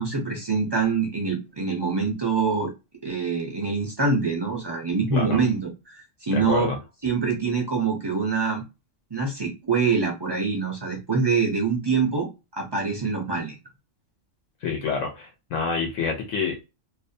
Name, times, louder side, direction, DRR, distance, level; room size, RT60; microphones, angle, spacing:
voice 1, 0.0-2.7 3.0-6.7 7.0-8.6 9.1-13.6, right 4 dB, 40° right, 0 dB, 0.4 m, -25 dB
voice 2, 6.3-6.8 14.6-16.6, left 5 dB, 90° left, 1 dB, 1.0 m, -27 dB
2.5 x 2.1 x 2.6 m, 0.26 s
omnidirectional pair, 1.3 m